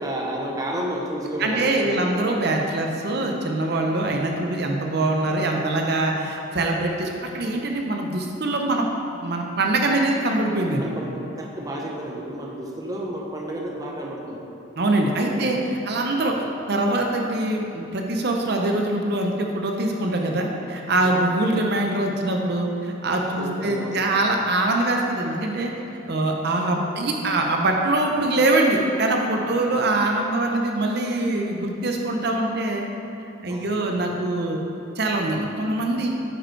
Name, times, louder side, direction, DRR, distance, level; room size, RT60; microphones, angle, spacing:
voice 1, 0.0-2.2 10.8-14.5 15.2-15.5 21.0-21.2 23.4-24.1 29.5-29.6 33.5-34.0, right 1 dB, 20° right, -1 dB, 0.7 m, -31 dB
voice 2, 1.4-8.8 9.2-10.8 14.8-16.3 16.7-25.7 26.1-32.8 33.4-34.6 35.0-36.1, right 2 dB, 55° right, 2 dB, 0.7 m, -23 dB
8.8 x 5.2 x 4.5 m, 3.0 s
head